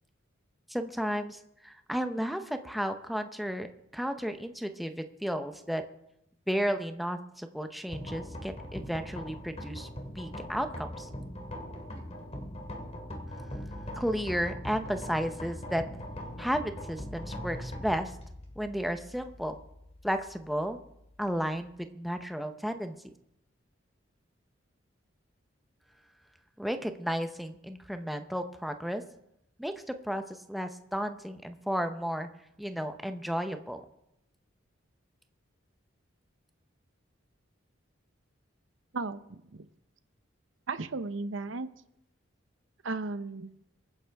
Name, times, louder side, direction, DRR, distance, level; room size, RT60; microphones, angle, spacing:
voice 1, 0.7-3.7 3.9-5.8 6.5-9.9 10.1-11.1 13.9-15.8 16.4-18.2 18.6-19.6 20.0-20.8 21.2-23.0 26.6-29.0 29.6-29.7 30.0-32.3 32.6-33.8, equal, ahead, 7 dB, 0.7 m, -33 dB
sound 1, 7.9-21.8, equal, 30° left, 2.1 m, -42 dB
voice 2, 38.9-39.7 40.7-41.7 42.8-43.5, right 3 dB, 75° right, 12 dB, 0.8 m, -35 dB
23.5 x 9.8 x 3.5 m, 0.82 s
head